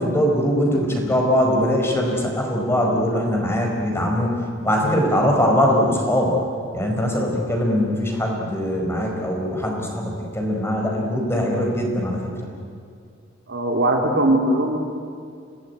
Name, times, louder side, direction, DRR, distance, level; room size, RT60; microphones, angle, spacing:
voice 1, 0.0-6.4 6.7-12.3, equal, 15° left, 0 dB, 4.7 m, -21 dB
voice 2, 13.5-14.8, right 1 dB, 60° right, 2 dB, 3.1 m, -20 dB
26.5 x 18.5 x 9.5 m, 2.3 s
head